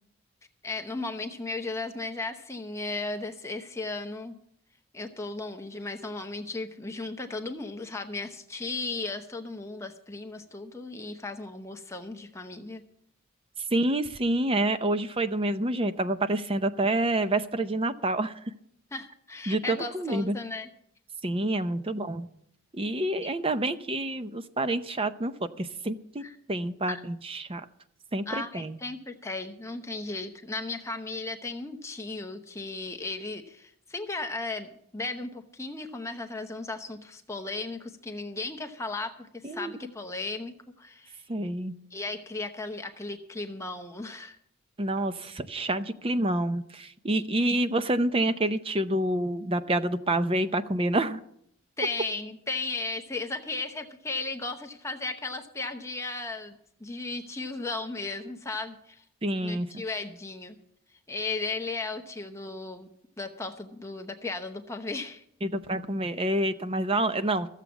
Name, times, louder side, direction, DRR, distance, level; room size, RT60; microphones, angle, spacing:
voice 1, 0.6-4.3 4.9-12.8 18.9-20.7 26.2-26.4 26.9-27.0 28.3-41.2 41.9-44.4 51.8-59.0 59.4-60.6 61.1-62.9 63.2-65.2, left 3 dB, 15° left, 5 dB, 0.8 m, -35 dB
voice 2, 13.7-18.3 19.5-20.4 21.2-22.3 22.8-25.3 25.6-26.2 26.5-27.6 28.1-28.8 39.4-39.7 41.3-41.7 44.8-51.2 59.2-59.7 65.4-67.5, right 1 dB, 25° right, 11 dB, 0.6 m, -28 dB
14.5 x 7.4 x 7.1 m, 0.72 s
head